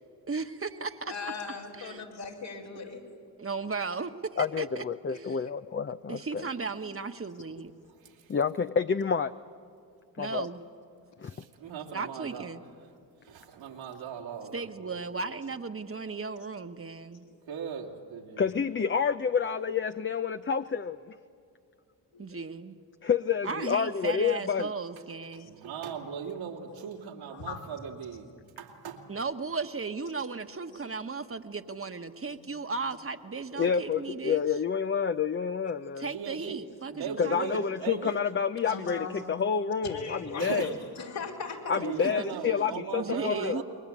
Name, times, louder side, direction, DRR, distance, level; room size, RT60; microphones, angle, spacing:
voice 1, 0.3-1.3 1.7-2.0 3.4-5.5 6.1-7.7 10.2-10.6 11.9-12.6 14.5-17.2 22.2-22.8 23.4-25.5 29.1-34.6 36.0-37.7 42.0-43.6, right 4 dB, 30° right, 8 dB, 1.4 m, -36 dB
voice 2, 1.1-3.0 3.8-3.9 22.1-22.4 25.4-25.5 26.7-26.9 27.3-27.7 32.3-32.4 38.6-39.3 39.8-40.7 41.0-41.8, left 5 dB, 75° left, -2 dB, 4.7 m, -39 dB
voice 3, 4.4-6.5 8.3-9.3 10.2-10.5 11.2-11.3 18.4-21.0 23.0-24.7 33.6-36.1 37.2-40.8 41.7-43.6, left 6 dB, 25° left, 9 dB, 0.6 m, -28 dB
voice 4, 11.3-12.5 13.2-14.7 17.5-18.5 25.4-28.3 28.6-29.0 33.6-33.7 36.1-36.6 36.9-38.2 40.4-40.7 41.8-43.6, right 7 dB, 80° right, 0 dB, 2.7 m, -38 dB
28.0 x 21.5 x 8.6 m, 2.4 s
supercardioid pair, 50°, 44 cm